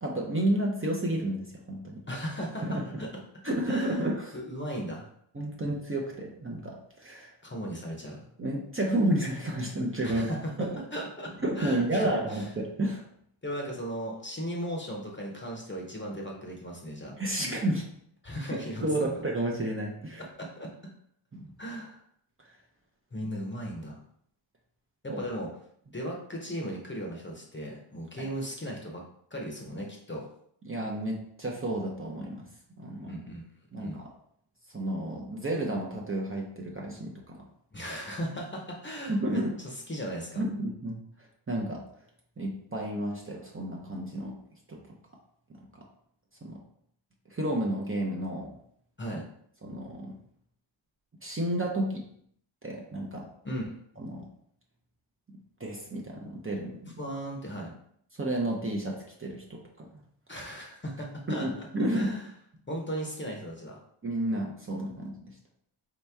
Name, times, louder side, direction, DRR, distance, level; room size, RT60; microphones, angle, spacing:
voice 1, 0.0-2.0 2.6-2.8 3.4-4.3 5.3-7.3 8.4-10.8 11.4-13.0 17.2-17.8 18.8-20.2 21.3-21.5 25.1-25.2 28.2-28.3 30.7-32.4 32.8-33.1 33.7-34.1 34.7-37.4 39.1-39.5 40.4-41.0 41.5-41.8 42.4-44.3 44.7-44.8 46.4-46.6 47.3-48.5 49.6-50.1 51.2-52.0 52.6-53.3 54.0-54.3 55.6-57.0 58.2-59.9 61.3-62.1 64.0-65.2, right 1 dB, 25° right, -2 dB, 0.7 m, -31 dB
voice 2, 2.1-3.2 3.7-4.0 4.3-5.1 7.4-8.3 10.0-12.4 13.4-17.2 18.2-19.2 20.4-20.9 21.6-22.0 23.1-24.0 25.0-25.5 25.9-29.0 29.3-30.2 33.0-33.4 33.8-34.0 37.7-40.4 49.0-49.3 53.4-53.8 57.0-57.7 60.3-61.7 61.9-62.3 62.7-63.8, equal, 25° left, -1 dB, 0.8 m, -37 dB
4.2 x 2.9 x 3.5 m, 0.67 s
wide cardioid pair, 110°, 50 cm